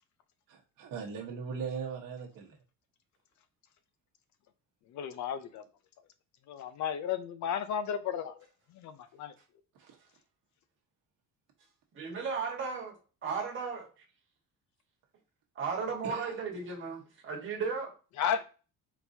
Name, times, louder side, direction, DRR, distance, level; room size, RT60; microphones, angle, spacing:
voice 1, 0.5-2.6 9.8-10.0 16.0-16.3, right 6 dB, 65° right, 1.3 m, -39 dB
voice 2, 4.9-5.6 6.5-8.5 8.7-9.3 18.2-18.4, left 8 dB, 55° left, 0.5 m, -33 dB
voice 3, 11.9-12.9 13.2-13.9 15.5-17.9, right 5 dB, 35° right, 1.5 m, -35 dB
4.3 x 4.0 x 2.7 m
cardioid pair, 165°, 35 cm